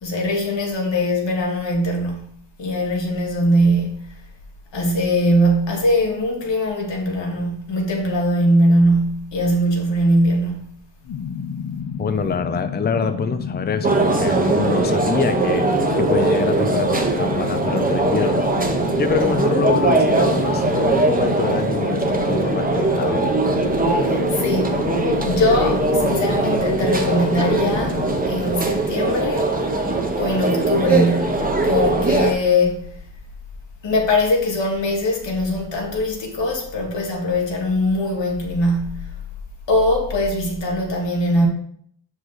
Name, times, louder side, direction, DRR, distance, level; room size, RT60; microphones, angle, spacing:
voice 1, 0.0-4.2 4.7-10.8 24.0-24.8 25.2-29.6 30.2-33.0 33.8-39.2 39.7-41.5, left 1 dB, 85° left, 1.8 m, -21 dB
sound 1, 11.0-28.2, left 6 dB, 60° left, 0.7 m, -30 dB
voice 2, 12.0-15.7 15.9-18.5 18.9-23.2, left 5 dB, 25° left, 0.5 m, -25 dB
sound 2, 13.8-32.3, right 3 dB, 20° right, 0.9 m, -20 dB
6.3 x 5.0 x 3.9 m
cardioid pair, 75°, 42 cm